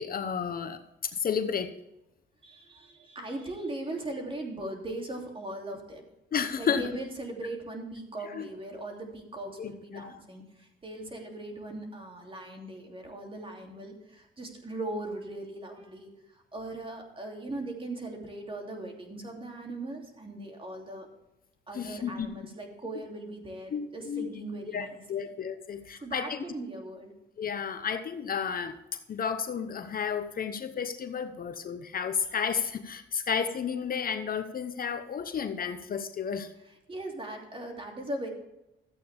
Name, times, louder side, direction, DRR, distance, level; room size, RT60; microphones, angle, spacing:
voice 1, 0.0-1.7 6.3-6.9 8.2-8.5 9.6-10.1 21.7-22.5 23.7-24.3 24.7-26.4 27.4-28.7 29.1-36.5, left 7 dB, 45° left, 10 dB, 0.9 m, -32 dB
voice 2, 2.4-6.1 6.6-21.1 21.7-25.3 26.0-27.1 36.7-38.3, right 2 dB, 25° right, 1 dB, 2.9 m, -39 dB
13.5 x 8.6 x 3.5 m, 0.89 s
cardioid pair, 90°, 20 cm